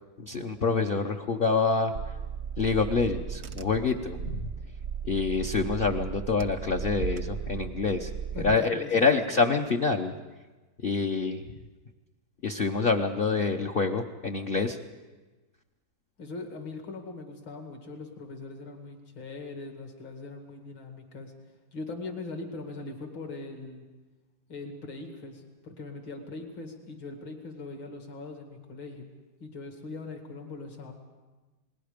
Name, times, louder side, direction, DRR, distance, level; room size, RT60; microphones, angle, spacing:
voice 1, 0.2-1.9 2.6-4.5 5.0-8.1 8.4-10.1 10.8-11.4 12.4-14.8, left 4 dB, 55° left, 2 dB, 0.6 m, -26 dB
Car / Engine, 1.9-8.6, right 7 dB, 60° right, 0.7 m, -36 dB
voice 2, 8.3-9.1 16.2-21.3 21.7-23.9 24.5-29.1 29.4-30.9, left 3 dB, 70° left, 3 dB, 2.9 m, -41 dB
29.0 x 20.5 x 5.1 m, 1.2 s
omnidirectional pair, 2.2 m